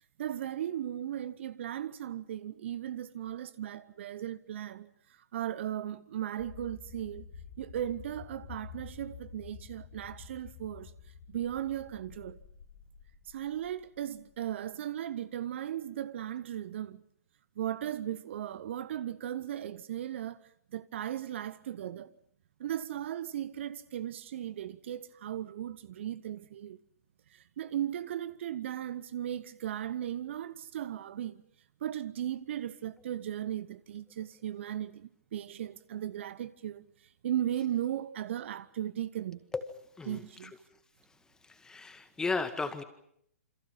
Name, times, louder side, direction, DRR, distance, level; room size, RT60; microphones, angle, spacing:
voice 1, 0.2-4.9 5.3-7.2 7.6-10.9 11.3-12.4 13.3-17.0 17.6-20.4 20.7-22.1 22.6-26.8 27.3-31.4 31.8-36.9 37.2-39.4 40.1-40.5, right 11 dB, 50° right, 0.9 m, -37 dB
sound 1, 6.4-14.5, left 6 dB, 45° left, 2.9 m, -50 dB
voice 2, 40.0-40.5 41.4-42.8, left 4 dB, 10° left, 2.0 m, -35 dB
28.0 x 26.5 x 5.6 m
figure-of-eight pair, 125°, 8 cm